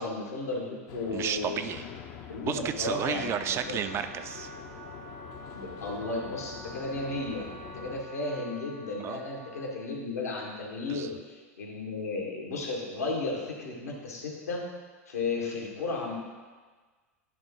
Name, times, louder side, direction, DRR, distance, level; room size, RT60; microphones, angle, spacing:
voice 1, 0.0-1.6 2.3-3.8 5.5-14.6 15.1-16.2, left 3 dB, 80° left, -2 dB, 1.7 m, -34 dB
sound 1, 0.9-8.0, left 8 dB, 45° left, 0.7 m, -45 dB
voice 2, 1.1-1.8 2.4-4.5 9.0-9.2 10.9-11.1, right 9 dB, 30° right, 10 dB, 0.4 m, -32 dB
Wind instrument woodwind instrument, 2.9-9.9, right 1 dB, 90° right, 1.2 m, -47 dB
10.5 x 3.7 x 3.7 m, 1.4 s
figure-of-eight pair, 90°, 8 cm